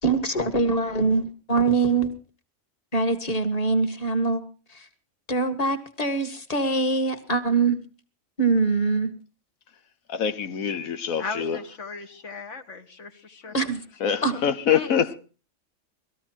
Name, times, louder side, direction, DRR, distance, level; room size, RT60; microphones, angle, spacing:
voice 1, 0.0-2.1 2.9-4.4 4.7-4.9 5.3-7.8 8.4-9.1 13.5-13.8 14.2-14.4, right 3 dB, 30° left, 1.9 m, -23 dB
voice 2, 10.1-11.6 14.0-15.1, left 8 dB, 90° left, 1.4 m, -25 dB
voice 3, 11.1-13.5 14.1-14.2 14.7-15.2, left 4 dB, 65° left, 1.7 m, -37 dB
20.0 x 14.0 x 4.4 m
omnidirectional pair, 1.4 m